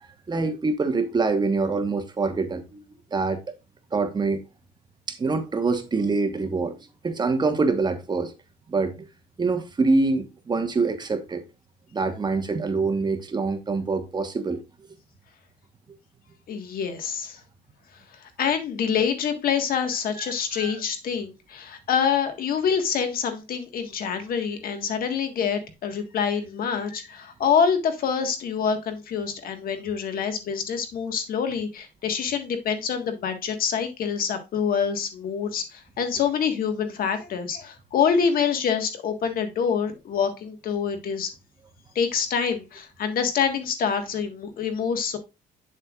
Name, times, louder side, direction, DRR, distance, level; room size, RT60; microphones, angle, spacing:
voice 1, 0.3-2.8 3.1-3.4 3.9-4.4 5.1-6.8 7.0-8.3 8.7-9.1 9.4-11.4 11.9-14.6 20.5-20.7, right 3 dB, 25° right, 1.2 m, -25 dB
voice 2, 16.5-17.4 18.2-41.3 41.9-45.2, left 7 dB, 60° left, 1.6 m, -26 dB
8.2 x 7.4 x 2.4 m
cardioid pair, 110°, 17 cm